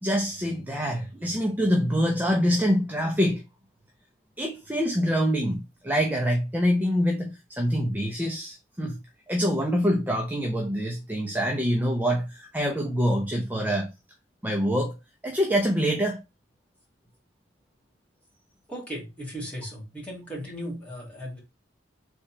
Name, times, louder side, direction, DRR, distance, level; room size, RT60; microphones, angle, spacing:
voice 1, 0.0-3.4 4.4-9.0 9.3-13.9 14.4-15.0 15.2-16.2, equal, 10° right, 0.6 m, -25 dB
voice 2, 18.7-21.4, equal, 5° left, 2.1 m, -36 dB
3.8 x 3.4 x 4.2 m
head